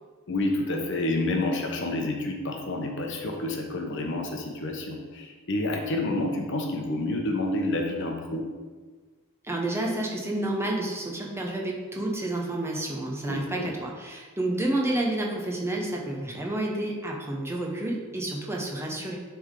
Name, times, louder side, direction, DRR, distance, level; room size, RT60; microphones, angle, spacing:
voice 1, 0.3-8.5 13.3-13.7, left 2 dB, 60° left, 3 dB, 0.9 m, -29 dB
voice 2, 9.4-19.2, right 1 dB, 10° right, -1 dB, 0.8 m, -30 dB
9.8 x 3.6 x 3.7 m, 1.4 s
head